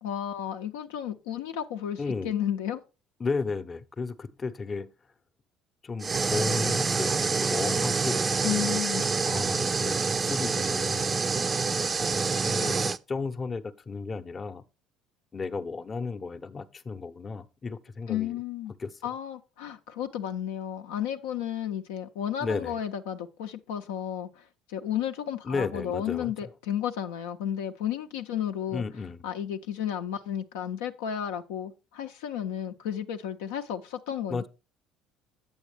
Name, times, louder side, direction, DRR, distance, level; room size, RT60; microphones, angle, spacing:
voice 1, 0.0-2.8 8.4-9.1 18.1-18.7 19.0-28.8 29.2-34.5, left 10 dB, 80° left, 0.5 m, -33 dB
voice 2, 2.0-2.3 3.2-4.9 5.8-8.2 9.2-11.2 11.9-14.6 15.3-18.4 18.8-19.1 22.4-22.8 25.4-26.3 28.7-29.2 34.3-34.5, left 4 dB, 30° left, 0.7 m, -34 dB
sound 1, 6.0-13.0, right 4 dB, 30° right, 0.4 m, -27 dB
8.2 x 7.0 x 3.3 m
hypercardioid pair, 65°, 0 cm